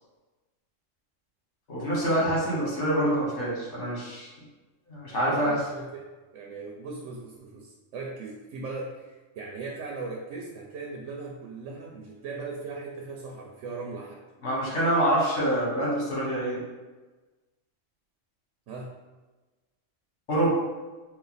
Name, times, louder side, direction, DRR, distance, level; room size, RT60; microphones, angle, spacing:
voice 1, 1.7-4.3 4.9-5.6 14.4-16.6 20.3-20.5, right 1 dB, 65° left, -5 dB, 1.7 m, -26 dB
voice 2, 5.1-6.0 6.3-14.2 18.7-18.9, right 3 dB, 80° right, 0 dB, 1.0 m, -38 dB
4.0 x 2.5 x 3.9 m, 1.2 s
omnidirectional pair, 1.3 m